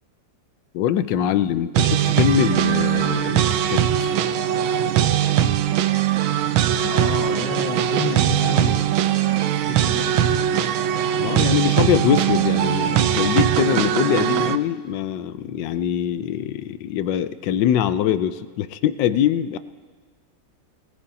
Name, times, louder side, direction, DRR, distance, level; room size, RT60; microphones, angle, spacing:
voice 1, 0.7-4.1 11.2-19.6, left 10 dB, 75° left, 12 dB, 1.1 m, -23 dB
sound 1, 1.7-14.6, right 10 dB, 80° right, 1.4 m, -20 dB
voice 2, 6.8-10.8, left 3 dB, 50° left, -5 dB, 2.1 m, -31 dB
21.0 x 18.5 x 2.8 m, 1.5 s
omnidirectional pair, 2.3 m